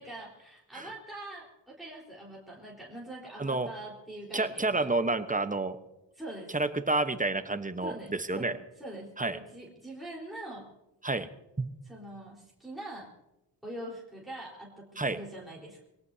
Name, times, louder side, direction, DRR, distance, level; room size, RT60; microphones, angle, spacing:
voice 1, 0.0-4.9 6.2-6.6 7.8-10.7 11.9-13.1 13.6-15.8, right 1 dB, ahead, -5 dB, 4.2 m, -43 dB
voice 2, 4.3-5.8 6.5-8.5 9.2-9.4 11.0-11.3 11.6-11.7 15.0-15.2, right 2 dB, 15° right, 10 dB, 1.0 m, -29 dB
24.0 x 18.0 x 2.8 m, 0.95 s
cardioid pair, 70°, 45 cm